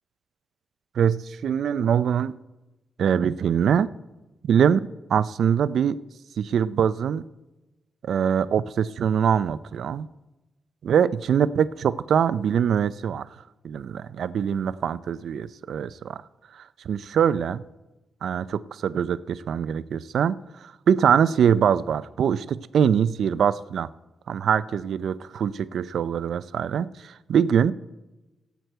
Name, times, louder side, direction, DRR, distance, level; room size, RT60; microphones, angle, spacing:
voice 1, 1.0-2.3 3.0-3.9 4.5-6.0 6.4-7.2 8.0-10.1 10.8-13.3 13.6-16.2 16.5-17.6 18.2-23.9 24.3-27.7, right 8 dB, 75° right, 16 dB, 0.4 m, -23 dB
16.5 x 8.1 x 4.6 m, 1.0 s
wide cardioid pair, 165°, 0 cm